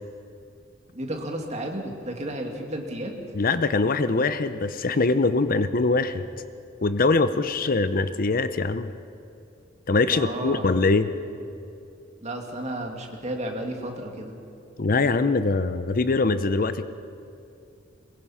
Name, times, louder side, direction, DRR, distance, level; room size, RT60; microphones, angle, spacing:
voice 1, 0.9-3.1 10.1-10.7 12.2-14.3, right 1 dB, 35° right, 2 dB, 2.3 m, -32 dB
voice 2, 3.3-6.2 6.8-8.9 9.9-11.1 14.8-16.8, left 3 dB, 45° left, 12 dB, 0.7 m, -23 dB
22.5 x 21.0 x 5.8 m, 2.6 s
head